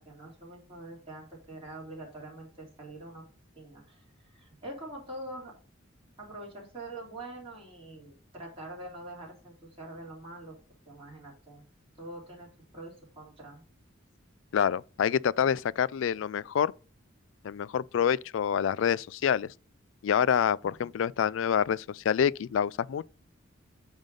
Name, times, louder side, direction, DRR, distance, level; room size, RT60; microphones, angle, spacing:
voice 1, 0.0-3.2 3.5-5.5 6.2-10.6 10.8-11.6 12.0-12.5 12.7-13.6 20.6-20.7, right 1 dB, 30° right, 3.2 m, -44 dB
voice 2, 14.5-16.7 17.4-19.5 20.0-23.1, left 8 dB, 70° left, 0.3 m, -27 dB
9.1 x 3.5 x 5.3 m
head